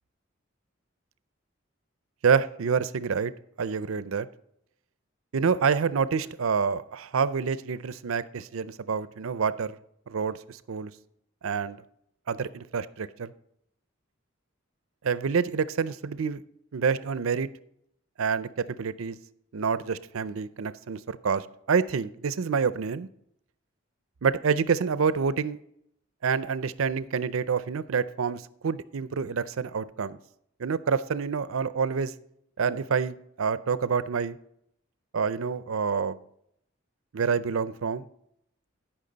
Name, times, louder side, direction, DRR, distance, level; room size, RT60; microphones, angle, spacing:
voice 1, 2.2-3.3 3.6-4.3 5.3-9.8 10.1-10.9 11.4-11.8 12.3-13.3 15.0-16.4 16.7-17.5 18.2-18.5 18.8-19.2 19.5-23.1 24.2-25.6 26.2-30.2 30.6-32.1 32.6-34.4 35.1-36.2 37.1-38.0, right 6 dB, 85° right, 16 dB, 0.5 m, -27 dB
15.0 x 5.8 x 4.0 m, 0.73 s
head